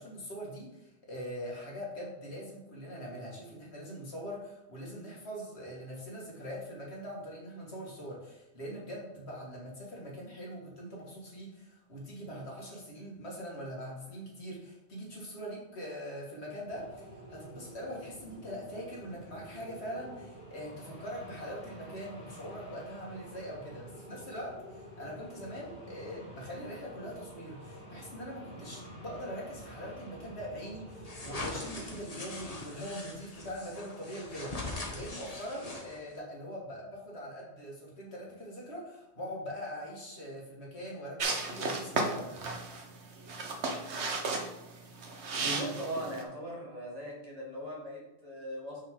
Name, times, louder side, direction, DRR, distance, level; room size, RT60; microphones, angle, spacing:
voice 1, 0.0-42.4, equal, 75° left, -3 dB, 2.2 m, -42 dB
sound 1, 16.6-31.5, right 1 dB, 15° right, 2.6 m, -49 dB
sound 2, 31.0-36.2, left 2 dB, 35° left, 1.2 m, -41 dB
sound 3, 41.2-46.2, right 3 dB, 80° right, 1.3 m, -34 dB
voice 2, 45.4-48.8, right 1 dB, 35° right, -4 dB, 2.0 m, -39 dB
6.3 x 6.2 x 3.7 m, 0.91 s
omnidirectional pair, 1.1 m